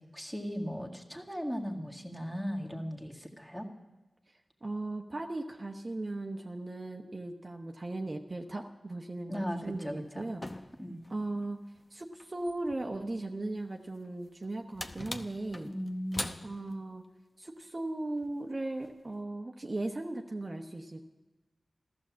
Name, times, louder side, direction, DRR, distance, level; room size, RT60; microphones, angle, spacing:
voice 1, 0.1-3.7 9.3-10.3 10.8-11.0 15.7-16.4, equal, 10° left, 1 dB, 2.0 m, -37 dB
voice 2, 4.6-10.4 11.1-11.6 11.9-15.7 16.4-17.0 17.4-21.0, right 2 dB, 35° right, 3 dB, 1.0 m, -37 dB
sound 1, 9.6-10.0 10.4-11.4 11.7-11.9 12.2-13.0 13.4-13.5 14.0-16.8 18.2-18.5 18.8-19.0, left 1 dB, 25° left, 0.8 m, -42 dB
14.5 x 13.0 x 7.4 m, 1.1 s
wide cardioid pair, 100°, 0 cm